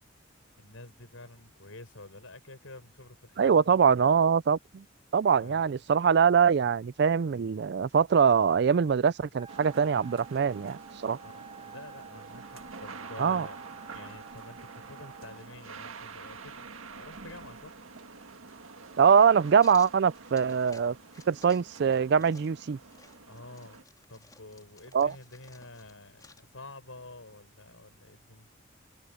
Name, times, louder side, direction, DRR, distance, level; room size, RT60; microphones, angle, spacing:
voice 1, 0.6-3.8 4.1-4.3 5.3-5.8 11.2-13.6 13.9-17.8 23.2-23.8 24.1-28.5, left 2 dB, 75° left, 5.8 m, -48 dB
voice 2, 3.4-4.8 5.1-11.2 13.2-13.5 19.0-21.0 21.3-22.8 24.9-25.1, right 6 dB, 55° right, 0.3 m, -23 dB
Wind instrument woodwind instrument, 9.3-15.5, right 7 dB, 25° right, 0.7 m, -50 dB
sound 1, 9.5-23.8, right 4 dB, 85° right, 1.7 m, -47 dB
sound 2, 19.6-20.8 21.1-21.7 22.0-26.5, left 4 dB, 20° left, 3.9 m, -57 dB
head